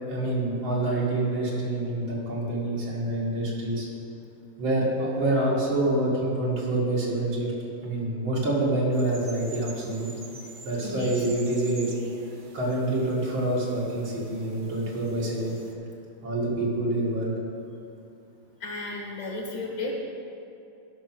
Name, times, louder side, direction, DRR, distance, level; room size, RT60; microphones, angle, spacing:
voice 1, 0.1-3.9 4.6-7.5 7.8-10.1 10.6-11.9 12.5-15.5 16.2-17.3, right 1 dB, 85° right, -4 dB, 2.7 m, -26 dB
sound 1, 8.9-15.7, right 4 dB, 70° right, 0.5 m, -47 dB
voice 2, 10.8-11.2 18.6-19.9, left 2 dB, 65° left, -1 dB, 2.2 m, -34 dB
11.5 x 5.9 x 6.0 m, 2.8 s
omnidirectional pair, 2.1 m